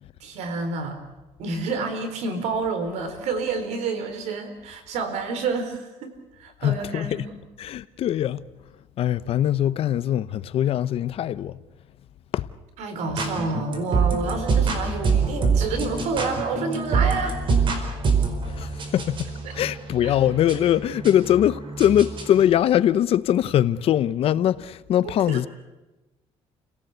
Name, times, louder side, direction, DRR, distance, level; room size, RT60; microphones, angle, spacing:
voice 1, 0.2-1.0 1.4-7.4 12.8-17.5 19.5-19.6 20.0-20.2 25.0-25.5, right 4 dB, 85° right, 4.2 m, -29 dB
voice 2, 6.6-7.3 7.6-8.4 9.0-11.6 12.3-12.4 18.5-19.3 19.5-25.5, left 11 dB, 60° left, 0.8 m, -22 dB
sound 1, 13.1-22.4, right 4 dB, 45° right, 4.8 m, -25 dB
30.0 x 17.5 x 8.2 m
cardioid pair, 130°, 11 cm